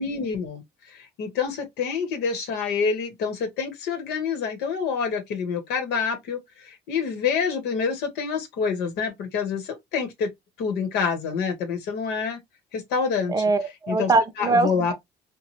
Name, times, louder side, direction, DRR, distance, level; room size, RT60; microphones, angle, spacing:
voice 1, 0.0-10.3 10.6-12.4 12.7-13.3 13.9-14.1 14.4-14.9, left 5 dB, 85° left, 0.9 m, -27 dB
voice 2, 13.3-14.9, right 3 dB, 20° right, 0.6 m, -22 dB
3.0 x 2.1 x 2.9 m
cardioid pair, 110°, 17 cm